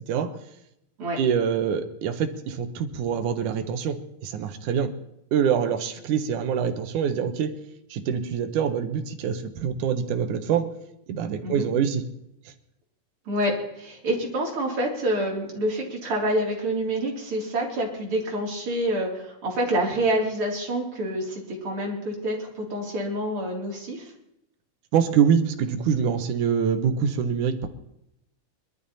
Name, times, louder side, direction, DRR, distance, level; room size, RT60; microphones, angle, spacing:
voice 1, 0.1-0.4 1.2-4.9 5.3-7.6 7.9-10.7 11.1-12.0 12.5-12.6 24.9-27.7, right 7 dB, 85° right, 9 dB, 2.7 m, -25 dB
voice 2, 13.3-24.1, right 1 dB, 45° right, -2 dB, 4.5 m, -27 dB
22.0 x 12.5 x 4.2 m, 0.80 s
omnidirectional pair, 3.5 m